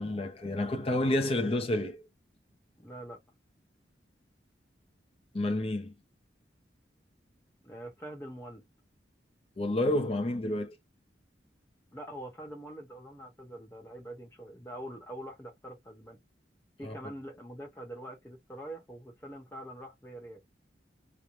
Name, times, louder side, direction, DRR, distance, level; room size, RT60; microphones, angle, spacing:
voice 1, 0.0-2.0 5.3-5.9 9.6-10.7 16.8-16.9, left 1 dB, 35° left, 0.6 m, -29 dB
voice 2, 2.8-3.2 7.6-8.7 11.9-16.2 16.8-20.4, right 1 dB, 15° left, 1.0 m, -44 dB
3.1 x 2.1 x 2.5 m
head